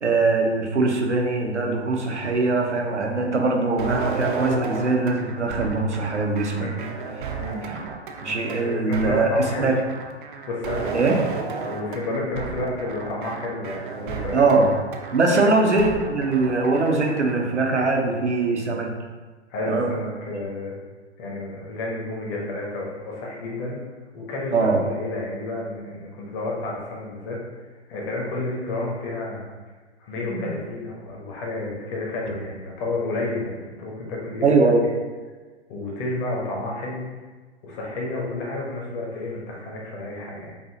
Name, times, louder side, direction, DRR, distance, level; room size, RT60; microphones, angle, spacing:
voice 1, 0.0-6.7 7.7-7.8 8.2-9.7 10.9-11.2 14.3-14.7 15.1-18.9 19.7-19.9 24.5-24.8 30.2-30.5 34.4-34.8, right 3 dB, 85° right, 2 dB, 0.8 m, -21 dB
sound 1, 3.8-17.4, right 5 dB, 50° right, 0.6 m, -33 dB
voice 2, 6.6-6.9 7.4-7.6 8.6-9.7 10.2-11.2 11.6-14.4 15.3-15.5 19.5-20.7 21.2-23.8 24.1-27.4 27.9-29.5 30.0-34.6 35.7-37.0 37.6-40.5, left 2 dB, 30° left, -2 dB, 1.1 m, -31 dB
5.4 x 2.7 x 2.8 m, 1.4 s
figure-of-eight pair, 110°, 34 cm